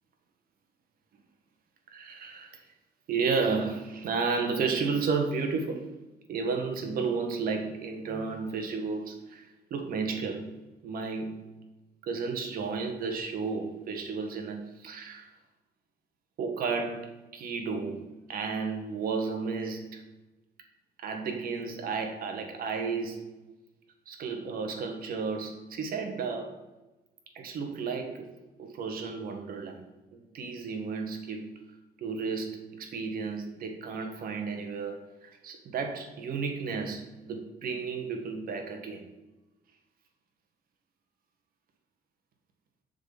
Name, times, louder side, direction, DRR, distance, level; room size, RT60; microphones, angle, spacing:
voice 1, 1.9-2.6 3.1-5.9 6.3-10.6 10.8-11.5 12.0-15.3 16.4-20.0 21.0-23.3 24.1-26.6 27.3-28.3 28.6-29.8 30.1-31.5 32.0-39.0, right 4 dB, 60° right, 4 dB, 1.5 m, -33 dB
6.8 x 4.1 x 5.9 m, 1.0 s
cardioid pair, 110°, 17 cm